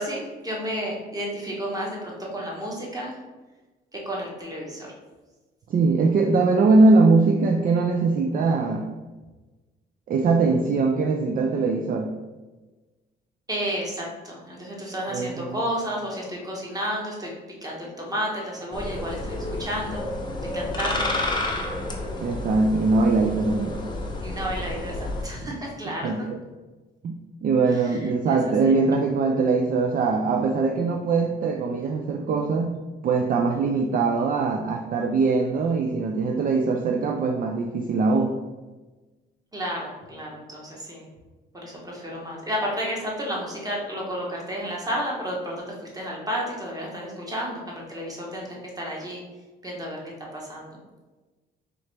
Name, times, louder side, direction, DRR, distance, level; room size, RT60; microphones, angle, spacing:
voice 1, 0.0-3.1 3.9-4.9 13.5-17.3 17.6-20.0 20.5-21.1 24.2-26.2 27.7-28.4 28.6-28.8 39.5-41.1 41.5-49.2 49.6-50.0 50.3-50.8, equal, 20° right, -3 dB, 1.2 m, -32 dB
voice 2, 5.7-8.9 10.1-12.1 15.1-15.6 22.2-23.9 25.9-26.4 27.0-27.2 27.4-32.8 33.0-38.3, right 3 dB, 45° right, 3 dB, 0.4 m, -22 dB
sound 1, 18.7-25.2, left 2 dB, 20° left, 0.7 m, -30 dB
3.8 x 3.1 x 3.3 m, 1.2 s
cardioid pair, 90°, 20 cm